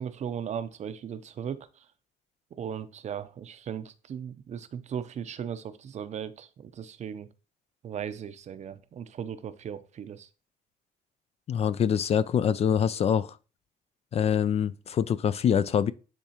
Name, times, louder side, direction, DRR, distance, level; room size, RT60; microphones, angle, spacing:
voice 1, 0.0-1.8 2.5-7.3 7.8-10.3, right 8 dB, 45° right, 0.6 m, -37 dB
voice 2, 11.5-13.4 14.1-15.9, left 8 dB, 40° left, 0.4 m, -25 dB
10.0 x 3.6 x 2.9 m
cardioid pair, 110°, 17 cm